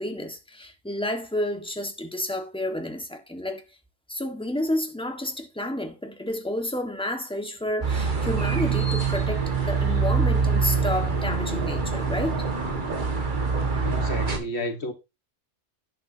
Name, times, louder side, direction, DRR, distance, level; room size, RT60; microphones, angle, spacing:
voice 1, 0.0-3.6 4.1-12.4, left 1 dB, 5° left, 1.4 m, -30 dB
sound 1, 7.8-14.4, right 5 dB, 40° right, 1.6 m, -25 dB
voice 2, 13.8-14.9, left 1 dB, 55° left, 1.5 m, -31 dB
11.0 x 8.1 x 2.7 m
omnidirectional pair, 1.3 m